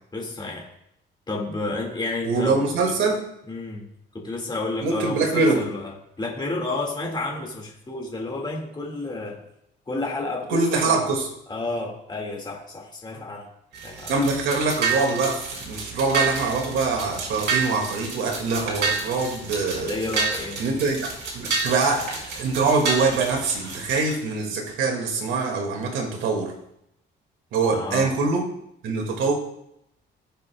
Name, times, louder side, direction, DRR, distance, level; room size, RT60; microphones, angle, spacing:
voice 1, 0.1-0.7 1.3-2.6 2.8-3.0 3.5-3.9 4.1-5.9 6.2-9.4 9.9-11.1 11.5-13.5 13.8-14.1 19.8-20.6 27.7-28.2, left 2 dB, 20° left, 0 dB, 2.1 m, -31 dB
voice 2, 2.2-3.2 4.8-5.7 10.5-11.3 14.1-20.0 20.6-21.1 21.3-26.5 27.5-28.4 28.8-29.3, right 3 dB, 85° right, 2 dB, 2.2 m, -24 dB
sound 1, 13.7-24.1, right 5 dB, 60° right, 3.8 m, -29 dB
17.0 x 6.8 x 2.3 m, 0.77 s
cardioid pair, 90°, 20 cm